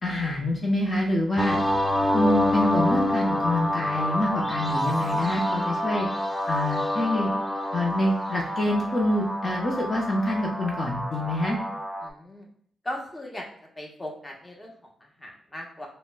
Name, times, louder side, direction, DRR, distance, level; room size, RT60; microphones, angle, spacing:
voice 1, 0.0-1.6 2.1-6.1 6.5-7.3 7.7-11.6, left 1 dB, 45° left, -1 dB, 0.7 m, -26 dB
sound 1, 1.4-12.1, left 1 dB, 5° left, 0.4 m, -27 dB
voice 2, 12.0-12.5 12.8-13.5 13.8-15.9, left 1 dB, 20° left, -1 dB, 0.9 m, -38 dB
4.1 x 2.1 x 2.2 m, 0.63 s
supercardioid pair, 55°, 0 cm